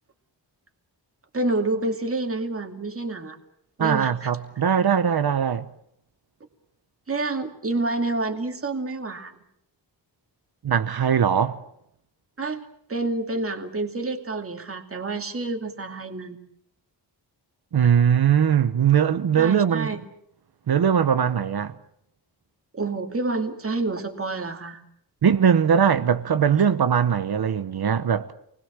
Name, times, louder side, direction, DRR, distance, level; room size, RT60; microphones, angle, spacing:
voice 1, 1.3-3.4 3.8-4.3 7.1-9.4 12.4-12.6 12.9-16.4 19.4-20.0 22.7-24.8, right 2 dB, 30° right, 2.5 m, -28 dB
voice 2, 3.8-5.7 10.6-11.6 17.7-20.0 20.7-21.7 25.2-28.3, right 8 dB, 60° right, 1.0 m, -20 dB
28.0 x 21.0 x 7.5 m
wide cardioid pair, 165°, 42 cm